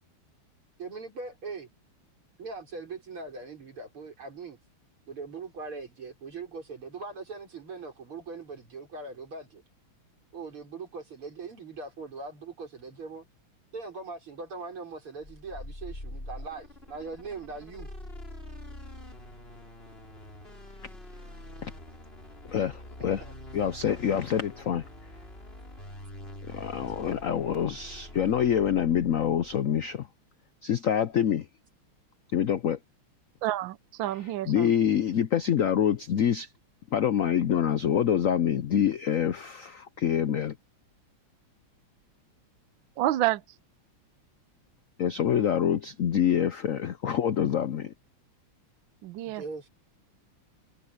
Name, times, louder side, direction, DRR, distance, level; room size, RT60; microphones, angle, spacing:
voice 1, 0.8-1.7 2.4-4.6 5.1-9.6 10.3-13.2 13.7-17.9 23.0-23.3 49.2-49.7, right 4 dB, 90° right, 6.4 m, -41 dB
sound 1, 15.2-29.8, left 1 dB, 25° left, 6.3 m, -45 dB
voice 2, 22.5-23.2 23.5-24.8 26.5-30.1 30.6-31.5 32.3-32.8 34.4-36.5 36.9-40.6 45.0-47.9, left 9 dB, 80° left, 0.7 m, -26 dB
voice 3, 33.4-34.7 43.0-43.4 49.0-49.4, right 14 dB, 70° right, 1.4 m, -29 dB
omnidirectional pair, 2.3 m